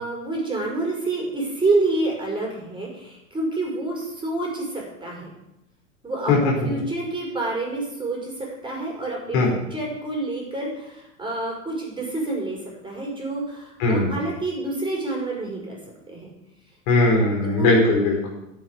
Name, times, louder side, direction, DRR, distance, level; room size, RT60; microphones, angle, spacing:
voice 1, 0.0-5.3 6.0-8.3 8.6-12.6 12.8-15.8 16.1-16.3 17.4-17.7, right 2 dB, 10° right, -1 dB, 5.6 m, -28 dB
voice 2, 13.8-14.1 16.9-18.3, left 2 dB, 50° left, 0 dB, 4.4 m, -19 dB
9.9 x 8.3 x 8.3 m, 0.88 s
figure-of-eight pair, 85°, 39 cm